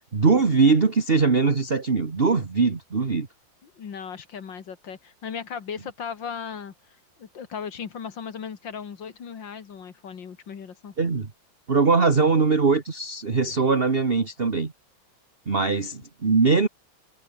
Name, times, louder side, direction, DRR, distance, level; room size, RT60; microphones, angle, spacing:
voice 1, 0.1-3.3 11.0-11.3 11.7-14.7 15.5-16.7, right 4 dB, 30° right, 1.8 m, -21 dB
voice 2, 3.6-6.7 7.2-10.9, left 7 dB, 65° left, 2.5 m, -37 dB
omnidirectional pair, 2.2 m